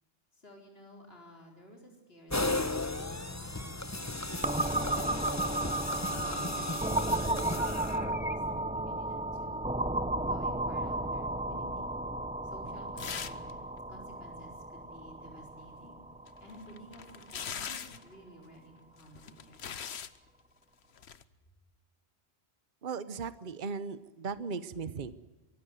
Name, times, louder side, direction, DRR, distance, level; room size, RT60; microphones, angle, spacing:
voice 1, 0.3-5.6 6.1-9.6 10.2-11.9 12.4-13.6 13.9-16.0 16.4-19.6, equal, 70° left, 1 dB, 4.6 m, -53 dB
sound 1, 2.3-8.3, left 2 dB, 15° left, 1.2 m, -35 dB
sound 2, 4.4-18.0, right 1 dB, 5° right, 0.8 m, -34 dB
sound 3, 13.0-13.5 13.8-13.9 16.3-18.1 19.0-20.2 21.0-21.2, left 7 dB, 90° left, 1.2 m, -41 dB
voice 2, 22.8-25.1, right 5 dB, 50° right, 14 dB, 1.1 m, -37 dB
24.0 x 15.0 x 9.3 m, 1.2 s
omnidirectional pair, 1.1 m